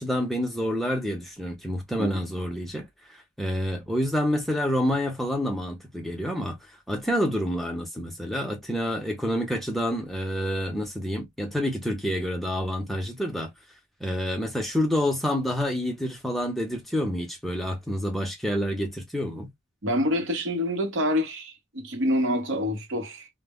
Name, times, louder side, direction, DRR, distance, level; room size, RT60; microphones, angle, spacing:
voice 1, 0.0-2.9 3.4-6.6 6.9-13.5 14.0-19.5, equal, ahead, 0.6 m, -28 dB
voice 2, 19.8-23.3, left 1 dB, 65° right, 0.8 m, -27 dB
2.1 x 2.0 x 3.5 m
head